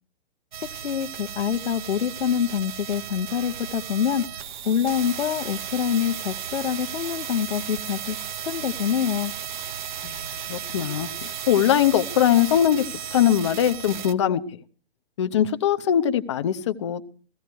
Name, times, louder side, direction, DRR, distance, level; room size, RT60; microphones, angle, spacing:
sound 1, 0.5-14.1, right 8 dB, 50° right, 0.9 m, -35 dB
voice 1, 0.7-9.3, left 8 dB, 75° left, 1.1 m, -26 dB
voice 2, 10.5-12.8 13.1-14.4 15.2-17.0, left 10 dB, 30° left, 0.8 m, -21 dB
16.5 x 14.5 x 4.6 m
hypercardioid pair, 165°, 32 cm